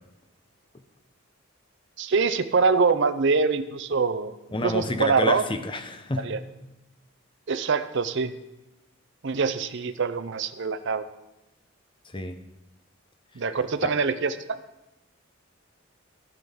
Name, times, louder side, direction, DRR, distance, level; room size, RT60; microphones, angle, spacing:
voice 1, 2.0-4.4 4.6-5.4 6.2-6.4 7.5-8.3 9.2-11.0 13.4-14.6, right 4 dB, 55° right, 11 dB, 0.6 m, -24 dB
voice 2, 4.5-6.4 12.1-12.4 13.8-13.9, left 2 dB, 25° left, 8 dB, 0.7 m, -29 dB
16.5 x 6.0 x 3.7 m, 0.96 s
head